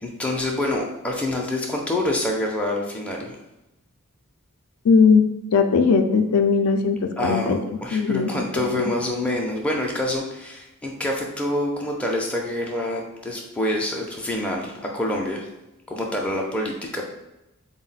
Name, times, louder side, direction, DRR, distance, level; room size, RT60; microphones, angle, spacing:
voice 1, 0.0-3.4 7.2-7.5 7.8-15.5 15.9-17.0, left 1 dB, 5° left, -1 dB, 0.4 m, -26 dB
voice 2, 4.8-5.2 5.5-7.6 7.9-8.9, left 5 dB, 70° left, 7 dB, 0.4 m, -19 dB
4.1 x 2.1 x 3.9 m, 0.94 s
head